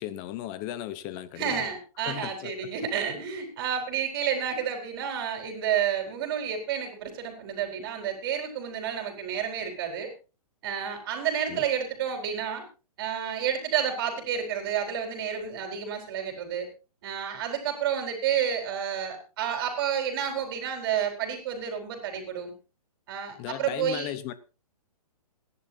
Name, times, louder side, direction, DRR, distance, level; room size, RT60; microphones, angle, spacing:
voice 1, 0.0-1.6 2.1-2.5 11.5-11.6 23.4-24.3, left 12 dB, 20° left, 14 dB, 0.9 m, -36 dB
voice 2, 1.4-10.1 10.6-12.6 13.0-16.7 17.0-22.5 23.1-24.1, right 8 dB, 35° right, 4 dB, 4.4 m, -30 dB
26.5 x 11.0 x 2.8 m, 0.31 s
hypercardioid pair, 165°, 19 cm